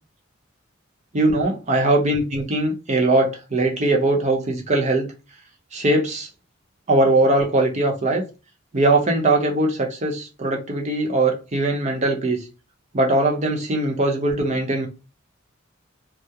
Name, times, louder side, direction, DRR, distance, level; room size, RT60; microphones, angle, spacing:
voice 1, 1.1-5.1 5.7-6.3 6.9-8.2 8.7-12.4 12.9-14.9, right 2 dB, 35° right, 0.6 m, -20 dB
2.3 x 2.0 x 2.7 m
head